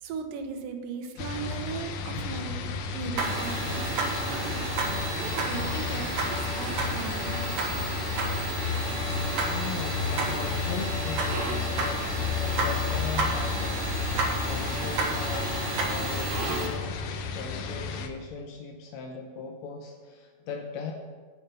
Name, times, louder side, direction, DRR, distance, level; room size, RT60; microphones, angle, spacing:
voice 1, 0.0-7.6, right 5 dB, 85° right, 6 dB, 2.7 m, -38 dB
sound 1, 1.2-18.1, left 5 dB, 85° left, 2.5 m, -32 dB
sound 2, 3.2-16.7, right 3 dB, 60° right, 2.7 m, -31 dB
voice 2, 9.4-20.9, left 5 dB, 70° left, 1 dB, 1.8 m, -38 dB
9.6 x 7.6 x 6.8 m, 1.5 s
omnidirectional pair, 3.8 m